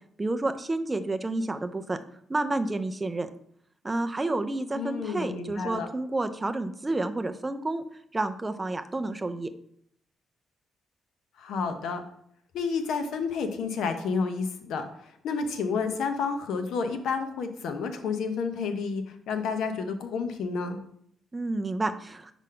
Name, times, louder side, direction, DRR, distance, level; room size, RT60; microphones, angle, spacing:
voice 1, 0.2-2.0 2.3-3.3 3.8-7.8 8.1-9.5 21.3-22.3, right 2 dB, 15° right, 8 dB, 0.4 m, -30 dB
voice 2, 4.7-5.9 11.4-12.0 12.5-20.8, left 5 dB, 75° left, 7 dB, 0.8 m, -30 dB
5.0 x 3.8 x 5.5 m, 0.68 s
cardioid pair, 165°, 0 cm